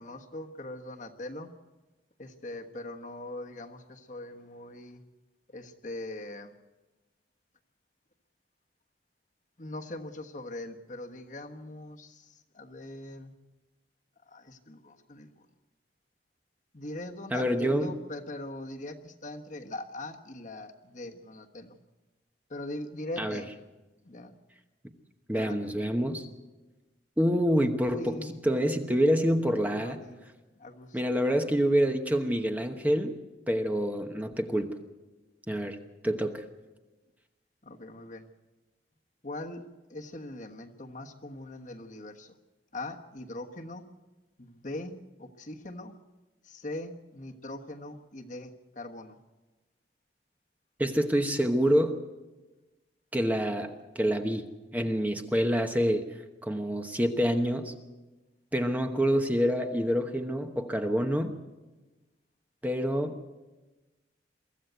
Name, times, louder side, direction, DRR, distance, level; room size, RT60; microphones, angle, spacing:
voice 1, 0.0-1.5 2.2-5.0 5.5-6.5 9.6-13.3 14.3-15.5 16.7-21.8 22.5-23.5 24.0-24.4 25.3-25.8 27.9-28.4 29.8-30.3 30.5-31.0 31.4-31.5 37.6-38.3 39.2-42.3 42.7-43.8 44.4-46.0 46.4-49.2, left 1 dB, 45° left, 4 dB, 1.3 m, -41 dB
voice 2, 17.3-17.9 23.2-23.4 25.3-26.3 27.2-28.2 28.5-30.0 30.9-33.2 33.5-34.7 35.5-35.8 36.0-36.4 50.8-52.0 53.1-54.4 54.7-56.0 56.4-57.7 58.5-61.3 62.6-63.2, equal, 10° right, 5 dB, 1.0 m, -27 dB
23.5 x 14.5 x 8.1 m, 1.2 s
head